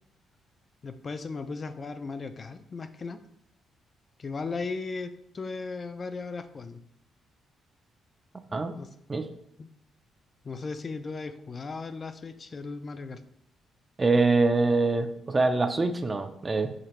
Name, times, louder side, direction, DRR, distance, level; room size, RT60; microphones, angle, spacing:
voice 1, 0.8-3.2 4.2-6.8 8.8-8.9 9.6-9.7 10.4-13.2, left 4 dB, 35° left, 9 dB, 0.3 m, -36 dB
voice 2, 8.3-8.8 9.1-9.3 14.0-16.7, right 3 dB, 25° right, 8 dB, 0.4 m, -24 dB
5.0 x 3.3 x 2.9 m, 0.74 s
cardioid pair, 90°, 0 cm